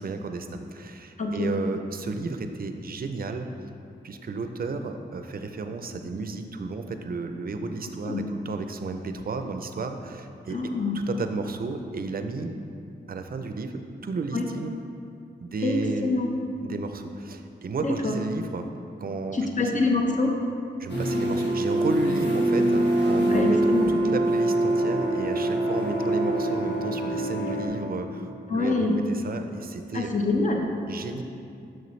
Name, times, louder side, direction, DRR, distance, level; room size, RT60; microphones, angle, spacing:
voice 1, 0.0-3.5 4.0-12.5 13.1-14.7 15.4-16.1 16.6-18.7 19.0-19.7 20.8-30.1 30.9-31.2, right 3 dB, 55° right, 7 dB, 0.5 m, -33 dB
voice 2, 1.2-1.5 8.0-8.3 10.5-11.0 14.3-14.4 15.6-16.3 17.8-18.2 19.3-20.3 23.3-23.9 28.5-29.0 29.9-30.7, left 3 dB, 45° left, 1 dB, 0.8 m, -25 dB
sound 1, 20.9-27.7, right 1 dB, 70° left, 1.5 m, -24 dB
6.7 x 6.3 x 3.2 m, 2.6 s
cardioid pair, 70°, 18 cm